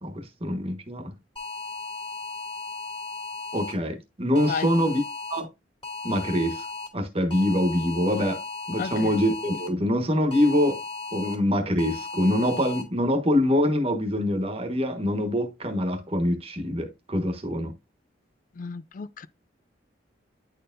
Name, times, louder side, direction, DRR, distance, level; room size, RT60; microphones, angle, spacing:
voice 1, 0.0-1.1 3.5-5.0 5.3-5.5 6.0-6.6 6.9-8.4 8.7-10.8 11.1-17.7, left 1 dB, 30° right, 1.2 m, -24 dB
sound 1, 1.4-3.7 4.4-5.4 5.8-6.9 7.3-9.7 10.3-11.3 11.8-12.8, left 4 dB, 25° left, 2.2 m, -36 dB
voice 2, 8.8-9.1 18.6-19.3, left 5 dB, 45° left, 0.4 m, -33 dB
10.0 x 4.4 x 2.5 m
head